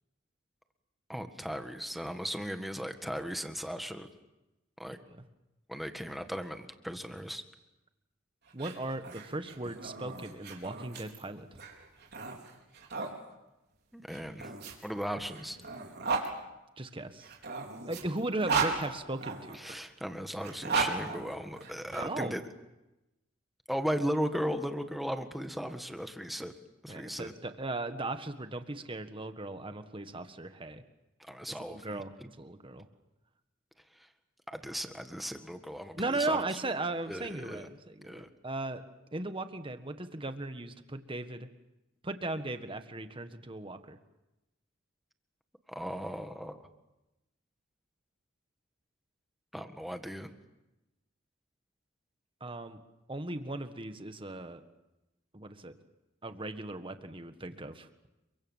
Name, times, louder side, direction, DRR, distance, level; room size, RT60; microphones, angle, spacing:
voice 1, 1.1-4.1 4.8-5.0 5.7-7.4 13.9-14.5 14.8-15.6 19.6-22.4 23.7-26.5 26.8-27.3 31.2-32.0 34.5-36.6 37.1-37.6 38.0-38.3 45.7-46.6 49.5-50.3, equal, ahead, 7 dB, 1.7 m, -37 dB
voice 2, 8.5-11.5 16.8-17.3 17.9-19.8 21.9-22.4 26.9-30.8 31.5-32.9 36.0-38.8 39.1-41.5 42.0-44.0 52.4-52.8 53.1-54.6 55.3-55.7 56.2-57.9, right 2 dB, 25° right, 9 dB, 1.6 m, -37 dB
sound 1, 8.5-13.1 14.1-16.3 17.2-19.6 20.4-22.0, right 4 dB, 55° right, 4.7 m, -35 dB
29.5 x 24.0 x 7.4 m, 0.97 s
head